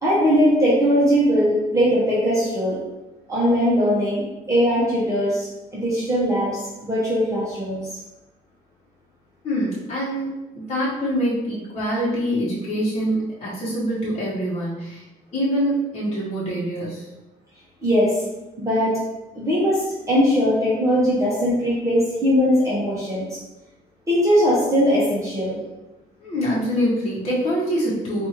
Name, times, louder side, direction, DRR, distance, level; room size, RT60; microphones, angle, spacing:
voice 1, 0.0-2.8 3.3-7.8 17.8-18.2 18.6-19.0 19.3-23.4 24.1-25.6, equal, 20° right, -8 dB, 1.1 m, -20 dB
voice 2, 9.4-15.0 15.3-17.0 26.2-28.3, equal, 40° left, -8 dB, 1.2 m, -25 dB
4.4 x 2.6 x 2.9 m, 1.0 s
cardioid pair, 110°, 17 cm